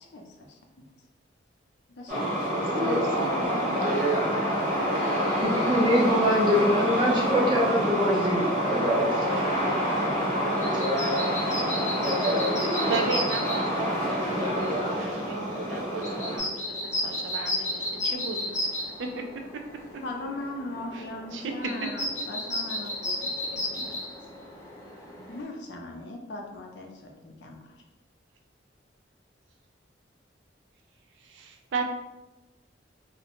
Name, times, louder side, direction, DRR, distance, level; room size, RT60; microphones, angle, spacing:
voice 1, 0.5-0.9 1.9-2.4 4.4-5.1 20.0-24.0 25.3-27.8, left 2 dB, 70° left, 2 dB, 0.4 m, -40 dB
sound 1, 2.1-16.4, equal, 45° right, 1.0 m, -27 dB
voice 2, 2.8-4.2 12.9-18.6 19.0-19.2 20.9-21.0 21.3-21.9 31.2-31.8, right 3 dB, 80° right, 4 dB, 0.4 m, -35 dB
voice 3, 5.4-9.1, equal, 25° right, -4 dB, 0.5 m, -24 dB
sound 2, 8.8-25.4, left 1 dB, 15° left, 0.7 m, -35 dB
2.5 x 2.1 x 2.9 m, 1.0 s
head